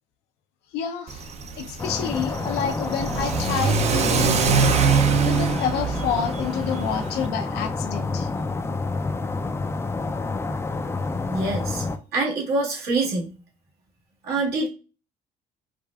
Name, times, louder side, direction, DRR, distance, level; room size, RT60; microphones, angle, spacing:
voice 1, 0.7-4.8 5.2-8.3, left 7 dB, 85° left, 0.6 m, -29 dB
Car / Accelerating revving vroom, 1.1-7.3, right 6 dB, 40° right, 0.5 m, -24 dB
sound 1, 1.8-12.0, left 3 dB, 15° left, 0.4 m, -29 dB
voice 2, 11.3-11.8 12.1-13.4 14.3-14.7, right 3 dB, 75° right, 1.7 m, -25 dB
4.8 x 2.5 x 2.3 m
cardioid pair, 110°, 17 cm